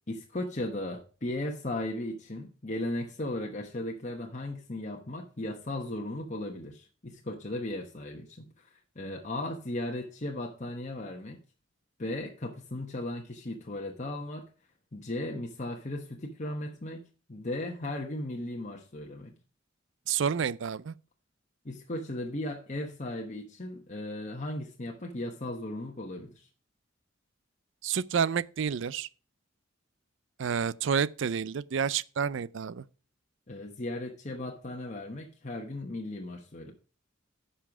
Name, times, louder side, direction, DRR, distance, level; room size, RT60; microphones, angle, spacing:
voice 1, 0.1-8.5 8.9-11.4 12.0-14.4 14.9-17.0 17.3-19.3 21.6-26.5 33.5-36.7, left 1 dB, 35° left, 1.1 m, -36 dB
voice 2, 20.1-20.9 27.8-29.1 30.4-32.8, right 7 dB, 60° right, 0.4 m, -29 dB
9.8 x 5.7 x 5.9 m
head